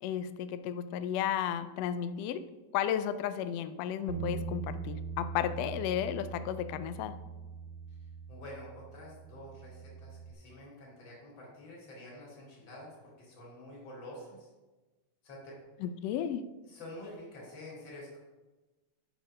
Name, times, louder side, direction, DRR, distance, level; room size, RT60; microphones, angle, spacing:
voice 1, 0.0-2.4 2.7-7.1 15.8-16.4, left 10 dB, 85° left, 12 dB, 1.4 m, -33 dB
Bass guitar, 4.1-10.3, right 5 dB, 70° right, 1.6 m, -42 dB
voice 2, 8.3-14.5 15.2-15.6 16.7-18.2, left 1 dB, 35° left, -4 dB, 3.0 m, -48 dB
7.5 x 5.5 x 5.5 m, 1.2 s
omnidirectional pair, 3.5 m